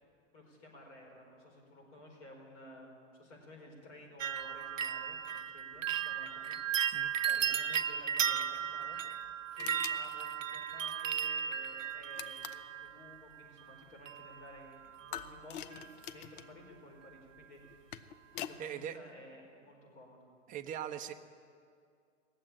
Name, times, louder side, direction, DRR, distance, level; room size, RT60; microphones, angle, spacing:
voice 1, 0.3-6.6 7.2-9.0 9.5-17.8 18.3-20.3, left 1 dB, 65° left, 0 dB, 4.8 m, -54 dB
sound 1, 4.2-13.1 14.1-14.6 14.8-15.4 15.7-15.8, right 8 dB, 85° right, 0.7 m, -35 dB
sound 2, 9.6-10.0 12.2-12.7 15.1-16.5 17.6-18.6, left 11 dB, 45° left, 0.6 m, -44 dB
voice 2, 18.6-19.0 20.5-21.1, right 9 dB, 20° right, 7 dB, 0.7 m, -40 dB
19.5 x 7.7 x 8.7 m, 2.3 s
hypercardioid pair, 110°, 37 cm